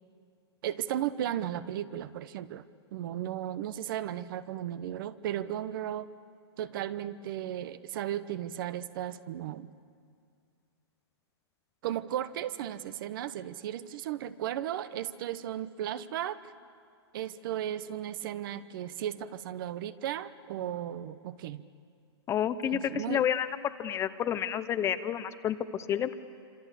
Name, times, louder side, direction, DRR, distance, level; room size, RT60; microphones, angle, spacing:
voice 1, 0.6-2.6 2.9-6.1 6.6-9.7 11.8-16.4 17.1-21.6 22.7-23.2, right 11 dB, 50° right, 14 dB, 1.0 m, -35 dB
voice 2, 22.3-23.5 23.8-26.2, left 9 dB, 20° left, 12 dB, 0.8 m, -30 dB
26.5 x 26.0 x 8.4 m, 2.2 s
hypercardioid pair, 140°, 14 cm